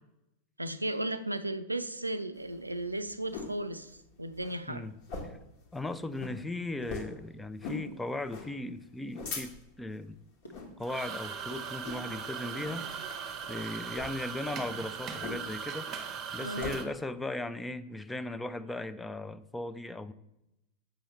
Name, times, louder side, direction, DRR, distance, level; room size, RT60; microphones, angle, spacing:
voice 1, 0.6-4.8 16.4-16.8, right 1 dB, 85° right, 0.4 m, -35 dB
sound 1, 2.4-3.6 4.0-4.1 4.3-4.6 5.0-5.5 5.8-5.9 6.2-6.4 6.9-7.2 7.6-7.9 8.3-8.5 8.9-9.8 10.4-10.7 11.1-11.4 11.8-12.2 12.6-12.9 13.8-14.1 15.2-15.7 16.0-16.8, left 4 dB, 45° left, 1.3 m, -40 dB
voice 2, 5.7-10.2 10.8-13.1 13.5-20.1, left 2 dB, 10° left, 0.3 m, -38 dB
sound 2, 6.8-7.5 7.7-8.6 9.0-9.5 9.9-12.2 12.4-13.6 14.0-15.5 15.8-15.9 16.3-16.5 16.9-17.1, equal, 80° left, 1.4 m, -55 dB
sound 3, 10.8-16.8, right 7 dB, 30° right, 0.8 m, -39 dB
7.5 x 5.7 x 3.2 m
figure-of-eight pair, 90°, 0 cm